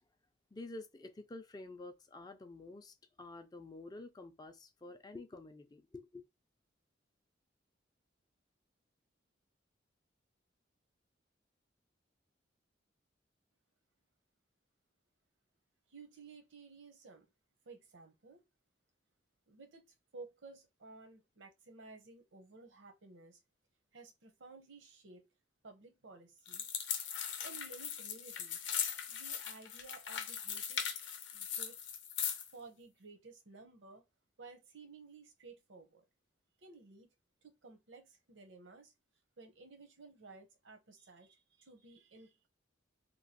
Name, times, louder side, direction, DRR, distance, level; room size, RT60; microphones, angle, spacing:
voice 1, 0.5-6.2, left 2 dB, 20° left, 0.3 m, -49 dB
voice 2, 15.9-17.2 17.7-18.4 19.5-19.8 20.1-23.4 23.9-25.2 25.6-26.7 27.4-28.7 29.1-31.0 31.3-31.8 32.5-34.0 34.4-36.0 36.6-37.1 37.4-38.9 39.4-42.5, right 3 dB, 80° right, 0.8 m, -55 dB
sound 1, 26.5-32.5, left 8 dB, 80° left, 0.6 m, -39 dB
3.0 x 2.3 x 2.8 m
head